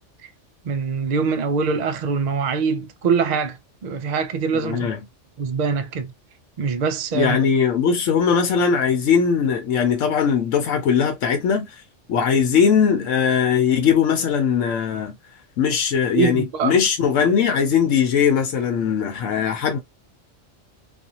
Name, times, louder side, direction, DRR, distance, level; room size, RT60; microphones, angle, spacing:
voice 1, 0.6-3.6 3.8-4.9 5.4-6.1 6.6-7.4 16.2-16.8, right 5 dB, 55° right, 0.5 m, -23 dB
voice 2, 4.5-5.0 7.1-11.7 12.1-15.1 15.6-19.8, left 7 dB, 85° left, 1.0 m, -20 dB
2.5 x 2.4 x 2.7 m
omnidirectional pair, 1.3 m